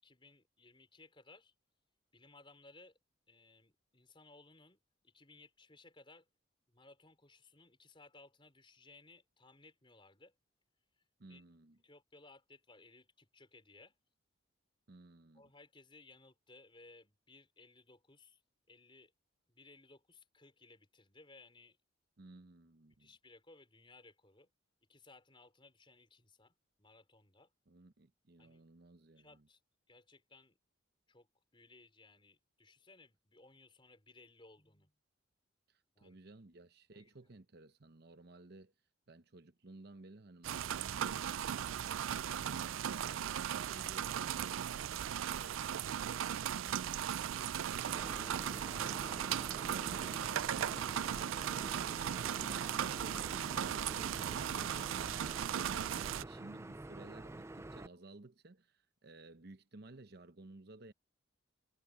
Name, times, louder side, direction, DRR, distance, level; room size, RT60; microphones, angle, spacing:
voice 1, 0.0-1.5 2.1-3.0 3.3-4.8 5.0-6.3 6.7-10.3 11.3-11.4 11.8-14.0 15.3-18.4 18.7-19.1 19.5-21.8 23.0-24.5 24.9-27.5 28.4-28.6 29.2-29.6 29.9-30.6 31.1-31.3 31.5-34.9 35.9-36.2 36.9-37.1 50.5-50.8, left 3 dB, 25° left, 4.8 m, -61 dB
voice 2, 11.2-11.8 14.9-15.4 22.2-23.1 27.7-29.4 35.7-38.7 39.1-41.1 41.4-44.8 45.1-45.6 46.0-60.9, right 2 dB, 55° right, 0.8 m, -56 dB
sound 1, 40.4-56.2, right 9 dB, 90° right, 0.4 m, -37 dB
sound 2, 47.9-57.9, right 2 dB, 15° right, 0.4 m, -48 dB
head